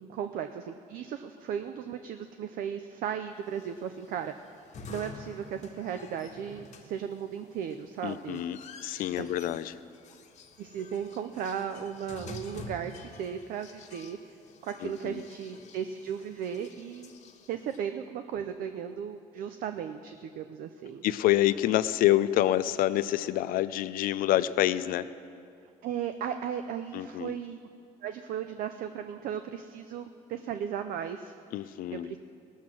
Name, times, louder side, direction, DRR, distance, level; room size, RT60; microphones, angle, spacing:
voice 1, 0.0-4.3 4.9-8.4 9.2-9.4 10.6-14.4 14.6-17.1 17.5-21.0 25.8-27.6 28.0-31.3 31.9-32.2, right 8 dB, 70° right, 8 dB, 0.6 m, -36 dB
sound 1, 3.5-17.8, left 3 dB, 50° left, 1.3 m, -49 dB
voice 2, 8.0-9.8 14.8-15.2 21.0-25.1 26.9-27.3 31.5-32.1, left 14 dB, 70° left, 14 dB, 0.5 m, -27 dB
18.0 x 7.3 x 6.1 m, 2.4 s
supercardioid pair, 85°, 15 cm